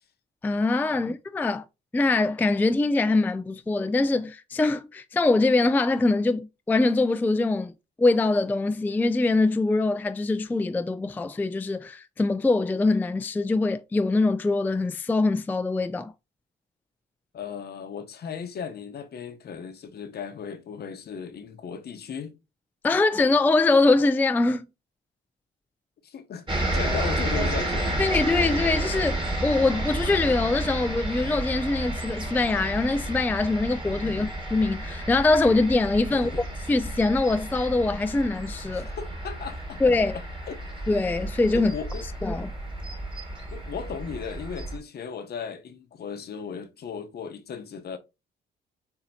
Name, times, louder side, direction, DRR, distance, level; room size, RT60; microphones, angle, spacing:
voice 1, 0.4-1.6 1.9-7.7 8.0-16.1 22.8-24.7 28.0-36.3 36.7-38.9 39.8-40.1 40.9-41.7 42.2-42.5, left 3 dB, 10° left, 0.3 m, -23 dB
voice 2, 17.3-22.4 26.0-27.9 34.0-34.3 36.1-36.5 38.7-39.8 40.1-40.6 41.5-42.0 43.5-48.0, left 6 dB, 55° left, 0.8 m, -36 dB
sound 1, 26.5-44.8, right 1 dB, 25° right, 1.7 m, -31 dB
6.9 x 2.8 x 2.7 m
cardioid pair, 90°, 20 cm